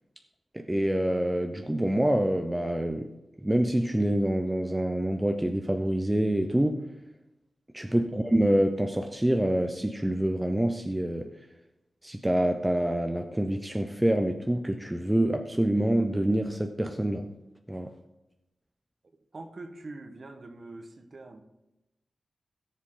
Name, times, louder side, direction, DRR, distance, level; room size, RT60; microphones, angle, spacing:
voice 1, 0.5-3.1 3.4-6.8 7.7-11.3 12.0-17.3 17.7-17.9, right 1 dB, 10° right, 5 dB, 0.6 m, -26 dB
voice 2, 19.3-21.4, right 2 dB, 40° right, 6 dB, 1.2 m, -44 dB
16.5 x 7.3 x 3.8 m, 0.93 s
wide cardioid pair, 150°, 0 cm